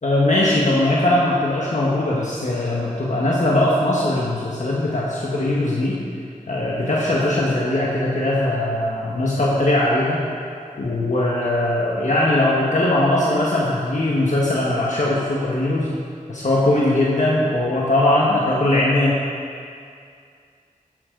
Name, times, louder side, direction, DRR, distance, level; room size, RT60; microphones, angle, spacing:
voice 1, 0.0-6.0 6.5-10.2 10.8-15.9 16.3-19.2, left 1 dB, 60° left, -5 dB, 1.5 m, -20 dB
14.0 x 10.0 x 3.9 m, 2.3 s
wide cardioid pair, 80°, 14 cm